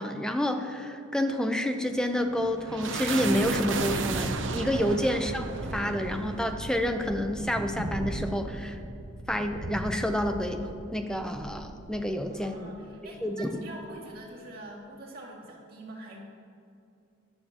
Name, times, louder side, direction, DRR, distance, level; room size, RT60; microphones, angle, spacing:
voice 1, 0.0-5.5 5.7-8.8 9.3-12.7 13.2-13.6, equal, 5° left, 5 dB, 0.7 m, -29 dB
sound 1, 1.9-12.7, right 3 dB, 65° right, 0.8 m, -35 dB
voice 2, 12.3-16.2, right 1 dB, 50° right, -4 dB, 2.4 m, -44 dB
16.5 x 11.5 x 3.0 m, 2.6 s
head